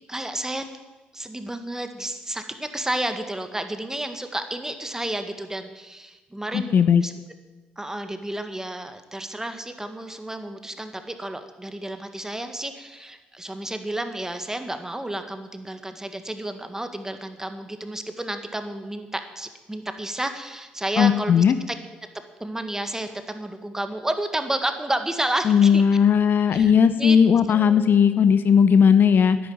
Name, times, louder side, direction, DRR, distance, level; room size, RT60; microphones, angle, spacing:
voice 1, 0.1-0.6 1.1-7.1 7.8-21.8 22.4-25.8 26.5-26.7 27.0-27.2 27.5-28.0, right 1 dB, 10° right, 8 dB, 1.7 m, -31 dB
voice 2, 6.5-7.0 21.0-21.5 25.5-29.4, left 7 dB, 55° left, 12 dB, 0.8 m, -17 dB
10.0 x 9.4 x 8.6 m, 1.2 s
hypercardioid pair, 50°, 4 cm